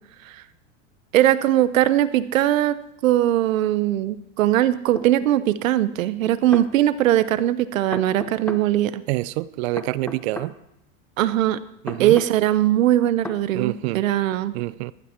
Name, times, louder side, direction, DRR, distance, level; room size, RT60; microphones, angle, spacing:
voice 1, 1.1-2.8 3.0-9.0 11.2-11.6 12.0-14.5, right 13 dB, 80° right, 1.0 m, -20 dB
sound 1, 5.0-5.1 6.2-6.7 7.9-8.7 9.8-10.5 11.9-12.3 13.2-13.4, left 2 dB, 5° left, 0.8 m, -34 dB
voice 2, 9.1-10.5 11.8-12.2 13.5-14.0 14.5-14.9, right 19 dB, 55° right, 0.5 m, -27 dB
15.0 x 11.5 x 4.5 m
hypercardioid pair, 120°, 39 cm